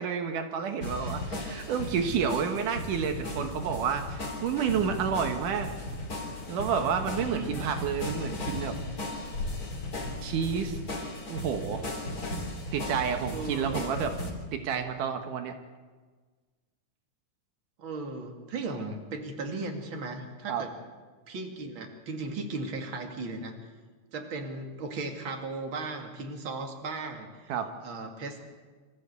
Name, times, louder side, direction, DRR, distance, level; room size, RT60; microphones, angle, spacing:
voice 1, 0.0-5.7 6.5-8.8 10.2-10.8 11.3-11.9 12.7-14.1 14.5-15.5 20.5-20.6 27.5-27.7, right 7 dB, 80° right, 6 dB, 2.9 m, -30 dB
sound 1, 0.8-14.3, left 1 dB, 30° left, 3.9 m, -36 dB
sound 2, 2.3-10.8, left 3 dB, 75° left, 3.9 m, -45 dB
voice 2, 7.1-7.6 13.3-13.8 17.8-20.7 21.3-23.5 24.1-27.5 27.8-28.4, right 3 dB, 40° right, 3 dB, 3.0 m, -36 dB
26.0 x 14.5 x 8.2 m, 1.4 s
omnidirectional pair, 3.6 m